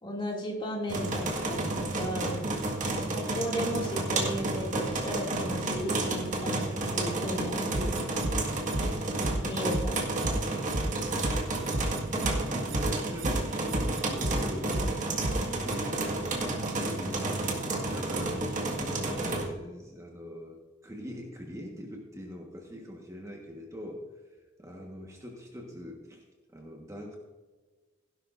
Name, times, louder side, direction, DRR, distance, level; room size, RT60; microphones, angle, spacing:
voice 1, 0.0-2.5 2.9-8.3 9.4-10.1 10.4-10.8, equal, 25° left, -1 dB, 2.6 m, -35 dB
sound 1, 0.9-19.5, right 2 dB, 40° right, 1.8 m, -31 dB
sound 2, 7.7-8.3 8.7-8.8 9.2-9.3 9.7-10.3 10.7-10.8 11.2-11.3 11.7-12.3 12.7-12.8 13.2-13.3 13.7-14.3 14.7-14.8 15.2-15.3 15.7-15.8, right 1 dB, 80° right, 1.4 m, -32 dB
voice 2, 12.1-15.0 15.3-17.5 17.9-24.1 24.6-26.2 26.5-27.2, equal, 15° right, 0 dB, 1.4 m, -42 dB
16.5 x 11.0 x 2.6 m, 1.3 s
head